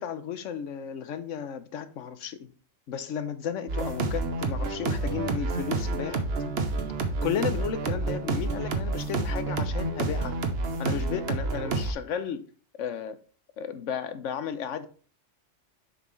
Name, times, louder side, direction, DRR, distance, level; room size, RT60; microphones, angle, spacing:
voice 1, 0.0-2.4 2.9-6.2 7.2-10.4 10.8-12.4 12.8-13.2 13.6-14.9, left 8 dB, 75° left, 1.0 m, -33 dB
sound 1, 3.7-11.9, right 3 dB, 55° right, 1.0 m, -29 dB
7.1 x 5.4 x 3.1 m
omnidirectional pair, 1.3 m